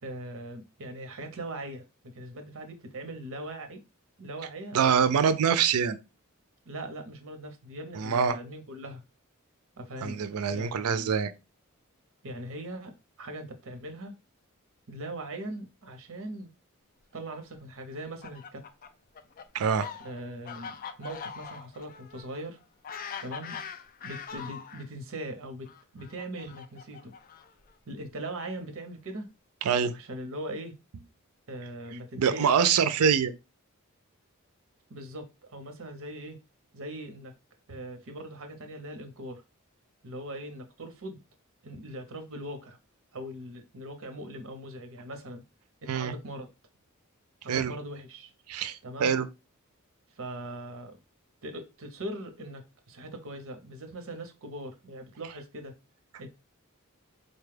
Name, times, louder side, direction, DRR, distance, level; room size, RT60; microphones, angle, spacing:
voice 1, 0.0-3.8 4.2-4.8 6.7-9.0 9.8-10.2 10.5-11.2 12.2-12.9 13.2-14.1 14.9-16.5 17.1-18.6 20.0-22.6 23.2-23.6 24.0-25.7 25.9-27.1 27.9-29.3 29.9-30.7 31.5-32.6 34.9-36.4 36.7-37.3 37.7-39.4 40.0-41.2 41.6-42.8 43.1-45.4 45.8-46.5 47.4-48.3 48.8-49.2 50.2-51.0 51.4-52.6 52.9-55.7 56.2-56.3, right 1 dB, 65° right, 0.8 m, -40 dB
voice 2, 4.7-6.0 7.9-8.4 10.0-11.3 19.5-19.9 29.6-29.9 32.2-33.3 45.9-46.1 47.5-47.7 48.5-49.3, right 7 dB, 90° right, 0.4 m, -25 dB
Fowl, 17.9-24.9 25.7-27.7, left 7 dB, 40° left, 0.4 m, -42 dB
4.1 x 2.3 x 3.2 m
head